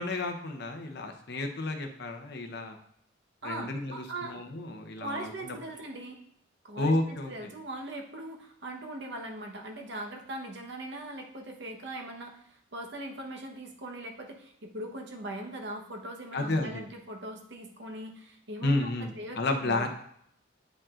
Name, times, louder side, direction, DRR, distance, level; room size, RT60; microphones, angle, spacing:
voice 1, 0.0-2.8 3.4-5.5 6.8-7.3 16.3-16.8 18.6-19.9, left 2 dB, 55° left, 5 dB, 0.8 m, -31 dB
voice 2, 3.4-4.4 5.0-6.2 6.6-6.9 7.3-18.9 19.1-19.9, right 1 dB, 60° right, 2 dB, 1.0 m, -40 dB
8.7 x 5.2 x 2.4 m, 0.69 s
head